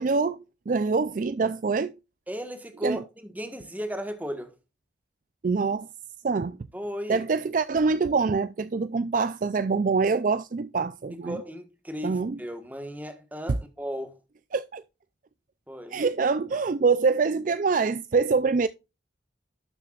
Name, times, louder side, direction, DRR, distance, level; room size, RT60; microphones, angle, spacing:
voice 1, 0.0-1.9 2.8-3.0 5.4-5.9 6.2-6.6 7.1-11.4 12.0-12.4 14.5-14.8 15.9-18.7, right 4 dB, 45° right, 0.4 m, -25 dB
voice 2, 2.3-4.5 6.7-7.2 11.2-14.1 15.7-16.0, equal, 10° right, 1.3 m, -35 dB
12.0 x 6.9 x 2.4 m
head